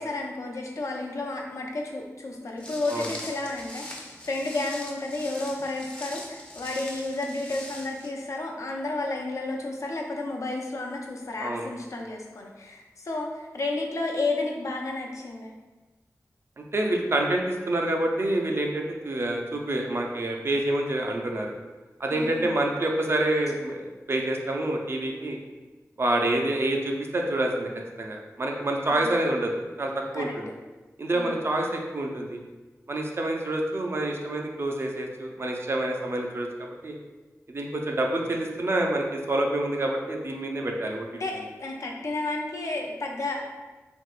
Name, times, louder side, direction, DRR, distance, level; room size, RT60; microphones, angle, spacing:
voice 1, 0.0-15.5 22.1-22.5 28.9-29.1 30.1-30.3 31.1-31.4 41.2-43.5, left 2 dB, 70° left, 0 dB, 0.5 m, -32 dB
Walk footsteps, 2.6-8.1, left 1 dB, 20° left, 0.5 m, -42 dB
voice 2, 16.7-21.5 22.0-23.8 24.1-25.4 26.0-27.7 28.0-29.5 29.8-30.5 31.0-32.4 32.9-37.0 37.5-41.1, right 1 dB, 50° right, 1 dB, 0.4 m, -27 dB
3.5 x 2.8 x 2.4 m, 1.2 s
wide cardioid pair, 95°, 6 cm